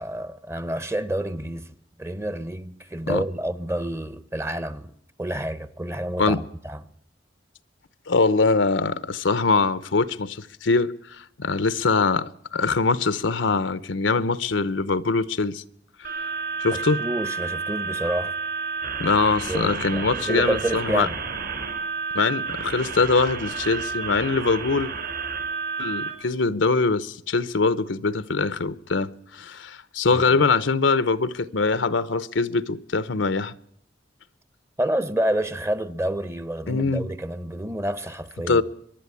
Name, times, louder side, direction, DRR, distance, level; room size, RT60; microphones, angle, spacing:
voice 1, 0.0-4.9 5.2-6.8 16.7-18.3 19.5-21.2 30.1-30.2 34.8-38.6, right 1 dB, 15° right, 0.8 m, -29 dB
voice 2, 8.1-15.6 16.0-16.2 16.6-17.0 19.0-21.1 22.1-24.9 25.8-33.5 36.7-37.1 38.5-38.6, left 4 dB, 80° left, 0.9 m, -23 dB
sound 1, 16.0-26.1, right 5 dB, 60° right, 5.6 m, -31 dB
24.0 x 11.5 x 9.7 m
head